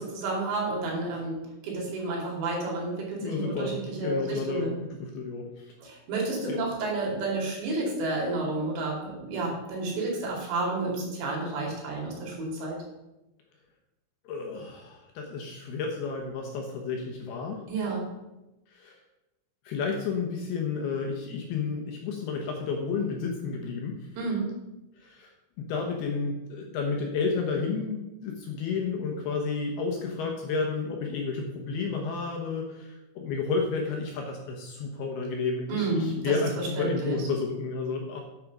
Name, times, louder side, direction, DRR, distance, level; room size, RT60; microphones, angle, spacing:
voice 1, 0.1-1.4 1.6-4.8 5.8-12.8 17.7-18.1 24.2-24.5 35.7-37.2, right 3 dB, 65° right, -2 dB, 4.8 m, -31 dB
voice 2, 3.2-5.7 6.4-6.6 14.2-17.6 18.7-19.0 19.6-24.1 25.0-25.3 25.6-38.2, left 4 dB, 70° left, 1 dB, 2.6 m, -31 dB
8.5 x 8.4 x 6.0 m, 0.97 s
omnidirectional pair, 5.5 m